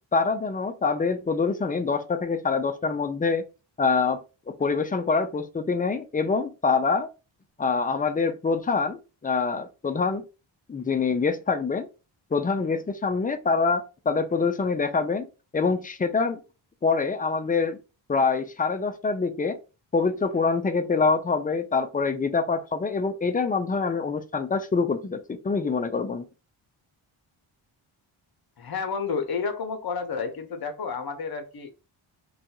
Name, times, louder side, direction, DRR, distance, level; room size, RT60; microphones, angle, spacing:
voice 1, 0.1-3.4 3.8-4.2 4.5-7.1 7.6-10.2 10.7-11.9 12.3-16.4 16.8-17.8 18.1-19.6 19.9-26.3, left 4 dB, 20° left, 0.3 m, -25 dB
voice 2, 28.6-31.7, left 5 dB, 50° left, 0.8 m, -30 dB
2.5 x 2.3 x 2.8 m
cardioid pair, 65°, 49 cm